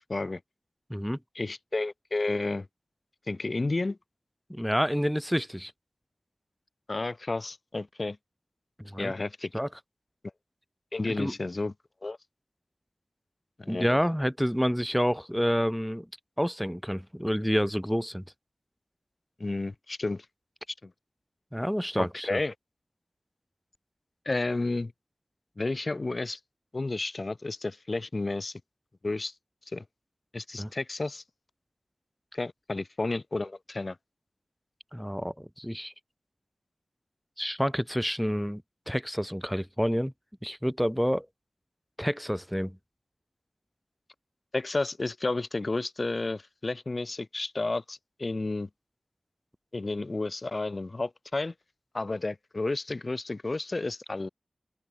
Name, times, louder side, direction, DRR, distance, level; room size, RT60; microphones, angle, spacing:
voice 1, 0.1-0.4 1.3-2.7 3.3-4.0 6.9-8.2 9.0-9.5 10.9-11.7 12.0-12.2 13.6-13.9 19.4-20.3 20.8-20.9 22.0-22.5 24.3-24.9 25.6-26.4 26.7-28.6 29.0-29.3 29.7-29.8 30.3-31.2 32.3-34.0 44.5-48.7 49.7-51.5 51.9-54.3, left 2 dB, 50° left, 2.3 m, -31 dB
voice 2, 4.5-5.7 8.9-9.1 9.5-9.7 11.2-11.3 13.7-16.0 16.4-18.2 21.5-22.4 30.6-30.7 34.9-35.9 37.4-40.1 40.4-41.2 42.0-42.8, equal, ahead, 1.5 m, -28 dB
open air
wide cardioid pair, 50°, 0 cm